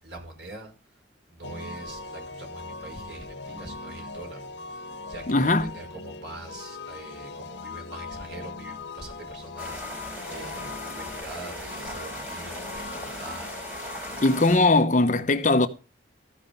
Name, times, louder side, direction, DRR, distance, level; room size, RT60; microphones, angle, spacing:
voice 1, 0.0-1.0 1.3-13.9, right 2 dB, 80° right, 5.1 m, -43 dB
sound 1, 1.4-14.8, left 3 dB, 70° left, 1.6 m, -40 dB
voice 2, 5.3-5.7 14.2-15.7, left 2 dB, 45° left, 0.8 m, -20 dB
sound 2, 9.6-14.6, equal, 5° right, 4.3 m, -38 dB
15.0 x 5.5 x 5.4 m
head